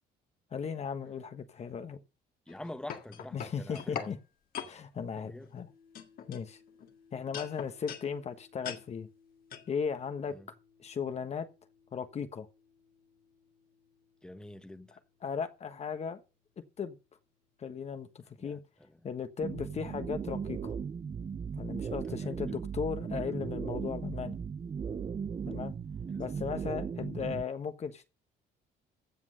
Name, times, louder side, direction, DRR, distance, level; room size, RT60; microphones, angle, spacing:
voice 1, 0.5-2.0 3.3-4.2 4.6-5.7 6.3-6.6 7.1-9.1 9.7-10.3 10.8-11.5 11.9-12.5 15.2-16.2 16.8-17.0 17.6-18.6 19.0-20.7 21.6-24.4 25.5-25.7 26.2-28.1, left 6 dB, 40° left, 1.2 m, -36 dB
sound 1, 2.5-4.1 4.5-4.7 5.4-5.6 6.0-6.9 7.3-8.1 8.6-8.8 9.5-9.7, left 8 dB, 60° left, 1.9 m, -41 dB
voice 2, 2.5-4.1 5.2-5.5 10.3-10.5 14.2-15.0 18.4-18.6 21.8-22.6 26.1-26.2, left 1 dB, 5° left, 1.3 m, -46 dB
sound 2, 5.7-20.9, left 6 dB, 80° left, 7.9 m, -66 dB
sound 3, 19.4-27.4, right 6 dB, 30° right, 0.7 m, -37 dB
15.5 x 6.1 x 6.6 m
cardioid pair, 110°, 17 cm